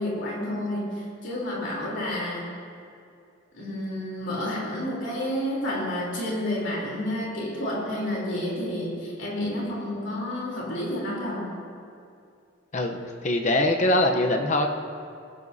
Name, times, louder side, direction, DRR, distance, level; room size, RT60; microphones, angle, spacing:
voice 1, 0.0-2.5 3.5-11.6, left 1 dB, 60° left, -4 dB, 3.6 m, -30 dB
voice 2, 12.7-14.7, left 1 dB, 35° left, 4 dB, 0.8 m, -23 dB
20.5 x 11.0 x 2.8 m, 2.4 s
head